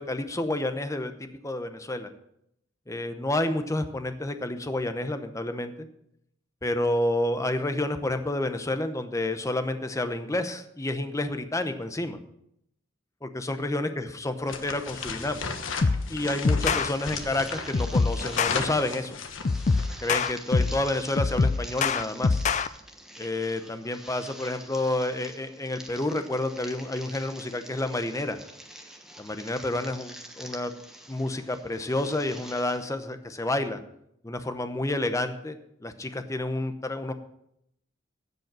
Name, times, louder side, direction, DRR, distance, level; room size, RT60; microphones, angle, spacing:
voice 1, 0.0-2.1 2.9-5.9 6.6-12.2 13.2-15.4 16.1-19.2 20.0-22.4 23.2-28.4 29.2-30.7 31.1-33.8 34.2-37.1, left 1 dB, 15° left, 9 dB, 0.8 m, -29 dB
sound 1, 14.5-19.9, left 5 dB, 85° left, 1.1 m, -35 dB
sound 2, 15.8-16.1 16.5-16.9 17.7-18.6 19.5-20.8 21.2-22.7, left 4 dB, 35° left, 0.4 m, -24 dB
sound 3, 16.6-32.8, right 1 dB, 5° right, 1.2 m, -46 dB
16.0 x 5.3 x 6.1 m, 0.76 s
head